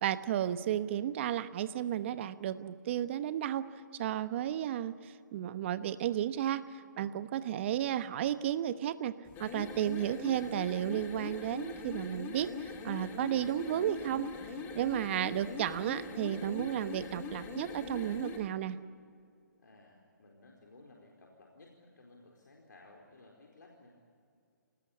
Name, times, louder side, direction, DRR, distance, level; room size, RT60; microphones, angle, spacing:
voice 1, 0.0-3.7 4.0-6.7 7.0-9.1 9.4-14.3 14.7-18.8, right 11 dB, 40° right, 13 dB, 1.1 m, -33 dB
sound 1, 9.3-18.5, left 4 dB, 20° left, 2.5 m, -42 dB
voice 2, 14.8-15.5 19.6-24.0, left 2 dB, 75° left, -1 dB, 4.4 m, -58 dB
28.0 x 19.5 x 8.5 m, 2.4 s
hypercardioid pair, 145°, 10 cm